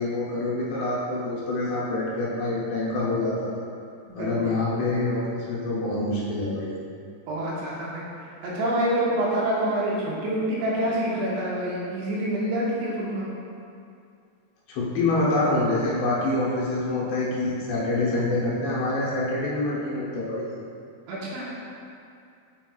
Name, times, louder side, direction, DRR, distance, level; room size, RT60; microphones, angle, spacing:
voice 1, 0.0-3.5 4.2-6.8 14.7-20.5, left 2 dB, 75° left, -6 dB, 2.9 m, -26 dB
voice 2, 7.3-8.0 8.4-13.3 21.1-21.4, right 1 dB, 80° right, -6 dB, 3.4 m, -26 dB
6.6 x 6.1 x 2.3 m, 2.4 s
omnidirectional pair, 5.1 m